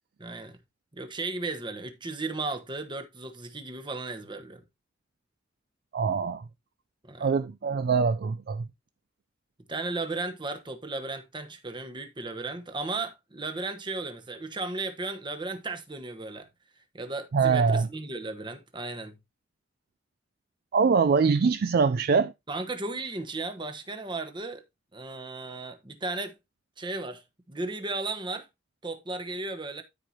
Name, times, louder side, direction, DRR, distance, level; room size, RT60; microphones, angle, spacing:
voice 1, 0.2-0.6 0.9-4.6 7.0-7.3 9.7-16.5 16.9-19.2 22.5-24.6 24.9-26.3 26.8-28.5 28.8-29.8, right 3 dB, 25° right, 1.2 m, -35 dB
voice 2, 5.9-6.4 7.2-8.7 17.3-17.9 20.7-22.3, right 5 dB, 55° right, 0.4 m, -23 dB
13.5 x 4.8 x 2.8 m
head